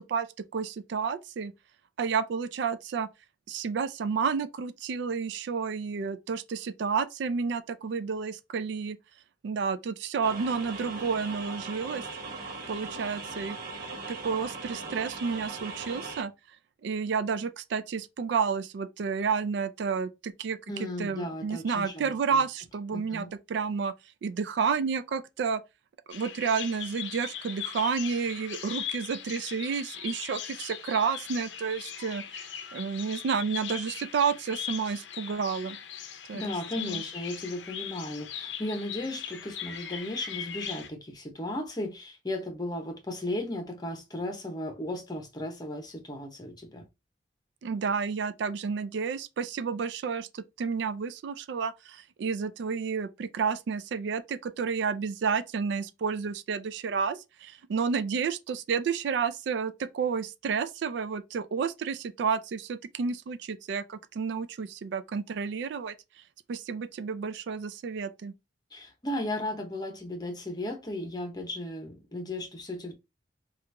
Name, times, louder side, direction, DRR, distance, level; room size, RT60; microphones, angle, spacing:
voice 1, 0.0-1.5 2.0-3.1 3.5-9.0 9.4-12.0 12.7-13.6 14.1-16.3 16.8-23.9 24.2-25.6 26.1-32.5 32.7-35.8 36.3-37.0 47.6-65.9 66.5-68.3, right 5 dB, 70° right, 0.3 m, -31 dB
sound 1, 10.2-16.2, right 3 dB, 55° right, 1.0 m, -39 dB
voice 2, 20.7-22.4 22.9-23.3 36.3-46.8 68.7-72.9, left 1 dB, 25° left, 0.8 m, -35 dB
Bird vocalization bird call bird song, 26.1-40.9, left 9 dB, 75° left, 0.5 m, -39 dB
2.9 x 2.4 x 3.3 m
head